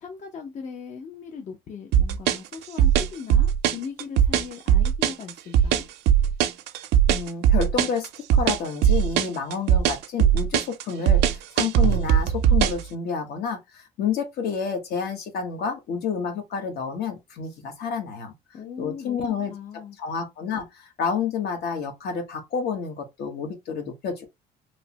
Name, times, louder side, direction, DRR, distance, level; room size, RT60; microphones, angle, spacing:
voice 1, 0.0-5.8 18.5-20.0, left 6 dB, 45° left, 0.6 m, -39 dB
sound 1, 1.9-12.8, right 9 dB, 80° right, 0.5 m, -19 dB
voice 2, 7.1-18.3 18.8-19.5 20.0-24.3, left 6 dB, 70° left, 1.1 m, -29 dB
3.1 x 2.0 x 2.8 m
cardioid pair, 110°, 17 cm